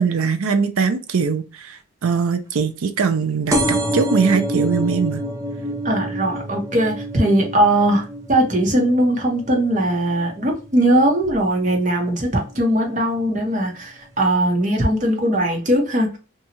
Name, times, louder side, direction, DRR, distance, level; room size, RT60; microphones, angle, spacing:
voice 1, 0.0-5.2, right 5 dB, 80° right, 0.5 m, -21 dB
sound 1, 3.5-10.7 11.2-11.7 12.5-12.6 12.9-13.0 13.2-13.3, right 1 dB, 15° right, 0.3 m, -27 dB
voice 2, 5.8-16.2, right 1 dB, 35° right, 0.9 m, -19 dB
2.9 x 2.3 x 2.7 m
head